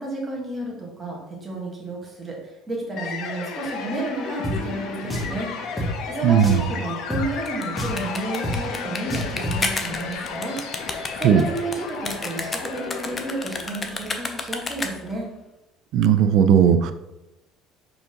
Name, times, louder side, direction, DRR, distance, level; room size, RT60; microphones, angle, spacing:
voice 1, 0.0-15.3, right 2 dB, 15° right, -3 dB, 1.7 m, -32 dB
sound 1, 3.0-14.1, left 5 dB, 60° left, 0.8 m, -34 dB
Drum, 4.4-4.6 5.1-5.4 5.8-5.9 6.4-6.7 7.1-7.2 7.8-8.0 8.4-8.6 9.1-9.6, equal, 5° left, 1.0 m, -27 dB
voice 2, 6.2-6.6 11.2-11.4 15.9-16.9, right 8 dB, 55° right, 9 dB, 0.5 m, -16 dB
sound 2, 7.3-15.2, left 3 dB, 20° left, 0.6 m, -31 dB
4.9 x 3.9 x 5.2 m, 0.96 s
cardioid pair, 150°, 0 cm